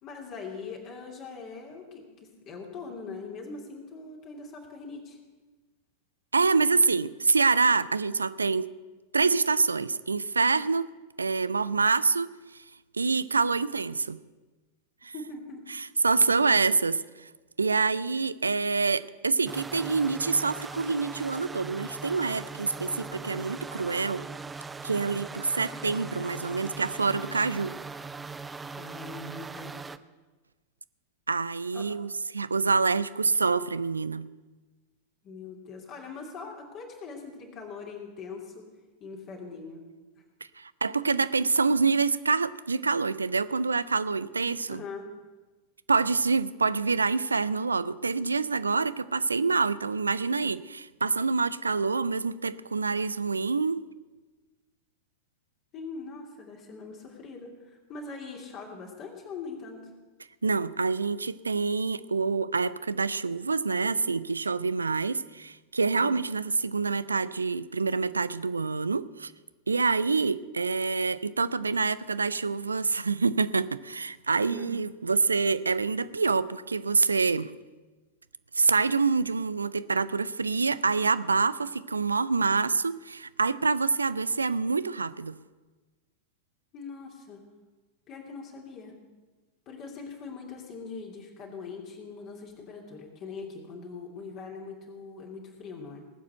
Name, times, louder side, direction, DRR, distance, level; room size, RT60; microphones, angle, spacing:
voice 1, 0.0-5.2 15.1-15.7 22.7-23.0 28.7-29.8 31.7-31.9 35.2-38.6 39.0-39.9 40.2-40.3 44.7-45.1 55.7-59.9 65.9-66.2 74.4-74.7 86.7-87.4 88.1-88.9 89.7-96.0, left 4 dB, 35° left, 0 dB, 2.7 m, -42 dB
voice 2, 6.3-8.7 9.1-10.9 11.2-12.3 12.9-14.2 15.0-15.1 15.8-17.3 17.6-24.3 24.8-27.8 31.3-34.3 40.6-44.8 45.9-53.8 60.4-69.3 69.7-77.5 78.5-85.4, right 4 dB, 75° right, 17 dB, 0.4 m, -26 dB
sound 1, 19.5-30.0, right 4 dB, 10° right, 0.5 m, -40 dB
18.5 x 7.3 x 7.9 m, 1.3 s
figure-of-eight pair, 90°, 0 cm